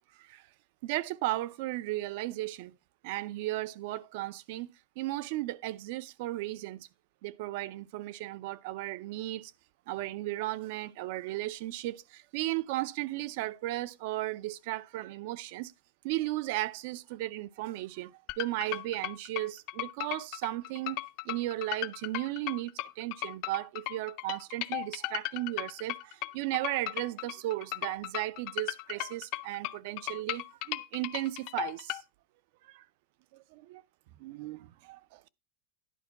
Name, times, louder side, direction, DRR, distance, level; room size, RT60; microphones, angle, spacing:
voice 1, 0.8-2.7 3.0-4.7 5.0-6.9 7.2-9.5 9.9-15.7 16.0-21.0 21.2-32.0 32.6-32.9 33.3-33.8 34.2-35.2, right 17 dB, 60° right, 0.5 m, -35 dB
sound 1, 18.3-32.0, left 19 dB, 50° left, 0.5 m, -36 dB
11.0 x 4.5 x 5.7 m
supercardioid pair, 155°, 0 cm